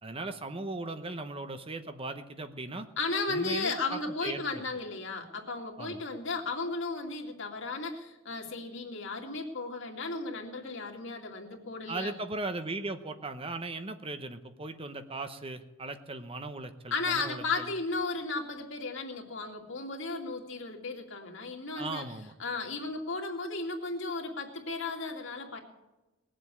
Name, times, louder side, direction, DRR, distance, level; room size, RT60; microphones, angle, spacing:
voice 1, 0.0-2.9 3.3-4.6 5.8-6.0 11.9-17.7 21.8-22.3, right 2 dB, 25° right, 9 dB, 0.9 m, -38 dB
voice 2, 3.0-12.1 16.9-22.0 22.4-25.6, left 3 dB, 65° left, 2 dB, 2.4 m, -35 dB
19.5 x 7.7 x 8.5 m, 1.1 s
head